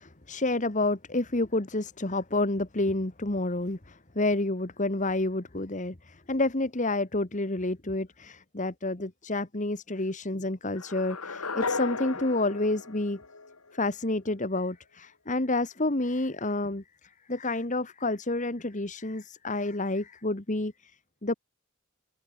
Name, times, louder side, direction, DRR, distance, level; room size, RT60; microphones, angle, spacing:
voice 1, 0.0-13.2 13.7-16.8 17.3-20.9 21.2-21.3, left 2 dB, 35° left, 1.5 m, -29 dB
sound 1, 10.8-13.9, left 4 dB, 75° left, 3.0 m, -35 dB
open air
head